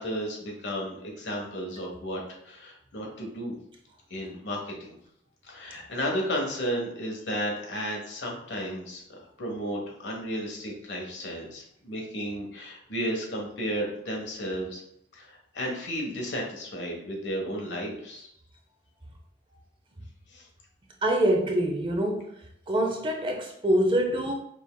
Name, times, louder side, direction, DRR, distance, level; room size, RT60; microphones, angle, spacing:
voice 1, 0.0-3.6 4.1-5.0 5.4-14.8 15.1-18.3 20.3-20.5, equal, 70° left, -1 dB, 1.1 m, -33 dB
voice 2, 21.0-22.3 22.7-24.3, right 1 dB, 25° right, 2 dB, 0.6 m, -25 dB
5.2 x 3.3 x 2.2 m, 0.71 s
head